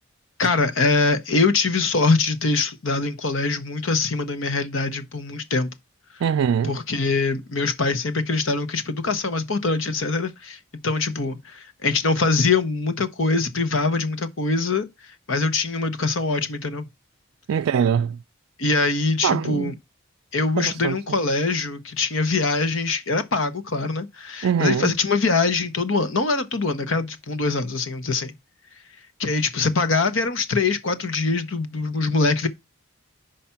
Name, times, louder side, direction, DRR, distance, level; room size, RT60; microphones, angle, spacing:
voice 1, 0.4-5.7 6.7-14.9 15.3-16.9 18.6-19.7 20.3-28.3 29.2-32.5, left 3 dB, 70° left, 0.9 m, -23 dB
voice 2, 6.2-6.7 17.5-18.2 19.2-19.8 20.6-21.0 24.4-24.9, right 7 dB, 80° right, 0.3 m, -22 dB
5.6 x 5.1 x 5.7 m
head